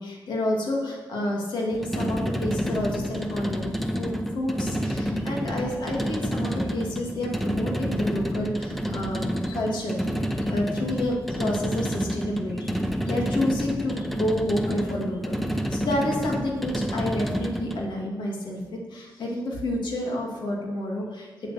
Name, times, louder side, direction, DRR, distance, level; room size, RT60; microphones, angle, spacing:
voice 1, 0.0-10.1 10.4-21.5, left 1 dB, 90° left, -1 dB, 2.5 m, -29 dB
sound 1, 1.7-17.9, equal, ahead, 0.7 m, -29 dB
8.5 x 7.9 x 6.7 m, 1.3 s
wide cardioid pair, 150°, 8 cm